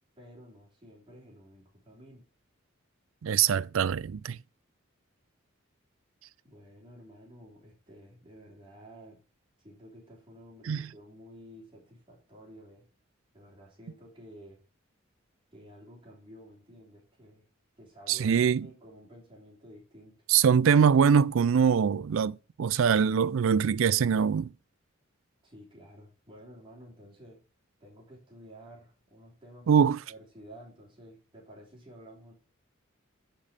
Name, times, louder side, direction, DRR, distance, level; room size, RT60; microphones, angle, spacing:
voice 1, 0.2-2.2 6.4-9.2 9.6-12.8 13.3-14.6 15.5-17.5 17.8-20.2 25.4-27.4 27.8-32.3, equal, 25° right, 3.2 m, -52 dB
voice 2, 3.2-4.4 10.7-10.9 18.1-18.7 20.3-24.5 29.7-30.0, right 7 dB, 70° right, 0.4 m, -23 dB
8.6 x 5.4 x 4.9 m
head